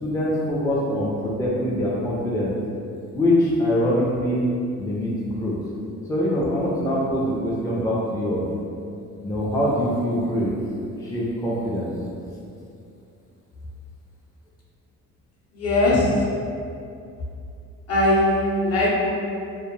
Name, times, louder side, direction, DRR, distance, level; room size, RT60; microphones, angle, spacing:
voice 1, 0.0-2.5 3.1-4.5 4.8-5.5 6.1-8.4 9.2-10.6 11.0-11.9, left 1 dB, 10° left, -6 dB, 0.4 m, -23 dB
voice 2, 15.5-16.3 17.9-19.1, left 1 dB, 55° left, -6 dB, 0.7 m, -20 dB
2.2 x 2.1 x 3.0 m, 2.5 s
cardioid pair, 90°, 30 cm